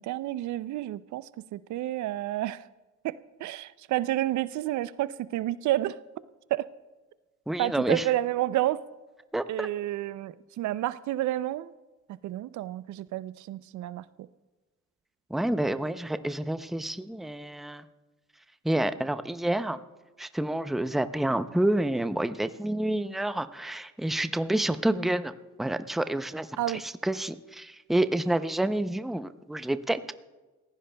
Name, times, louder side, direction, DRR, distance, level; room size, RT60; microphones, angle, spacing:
voice 1, 0.0-2.7 3.0-6.0 6.5-6.7 7.6-8.8 9.5-11.7 12.2-14.0 26.6-26.8, right 14 dB, 70° right, 0.4 m, -30 dB
voice 2, 7.5-8.1 9.3-9.7 15.3-17.8 18.6-19.8 20.2-25.3 25.6-30.1, right 1 dB, ahead, 0.5 m, -28 dB
28.5 x 15.5 x 2.2 m
cardioid pair, 90°, 30 cm